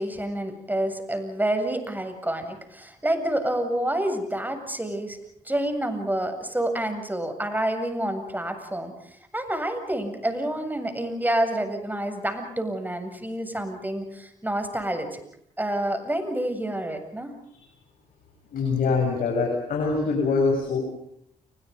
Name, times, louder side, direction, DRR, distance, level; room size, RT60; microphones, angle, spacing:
voice 1, 0.0-5.2 5.4-15.2 15.6-17.3, right 1 dB, 10° right, 7 dB, 7.7 m, -28 dB
voice 2, 18.5-20.8, left 4 dB, 70° left, 0 dB, 7.9 m, -24 dB
30.0 x 25.0 x 5.5 m, 0.73 s
supercardioid pair, 55°, 15 cm